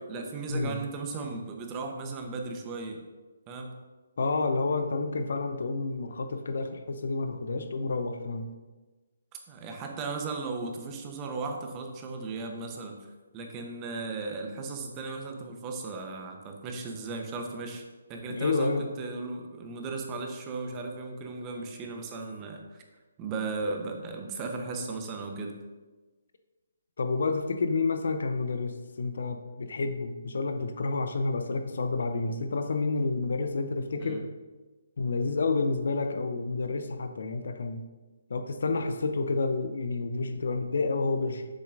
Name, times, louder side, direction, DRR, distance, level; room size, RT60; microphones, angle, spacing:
voice 1, 0.0-3.0 3.5-3.7 9.5-17.8 18.1-22.8 23.2-25.6 34.0-34.3, right 3 dB, 25° right, 3 dB, 1.0 m, -36 dB
voice 2, 4.2-8.5 18.3-18.9 27.0-34.3 35.0-37.8 38.3-41.5, left 3 dB, 65° left, 7 dB, 0.8 m, -29 dB
7.4 x 6.9 x 2.6 m, 1.2 s
figure-of-eight pair, 145°, 0 cm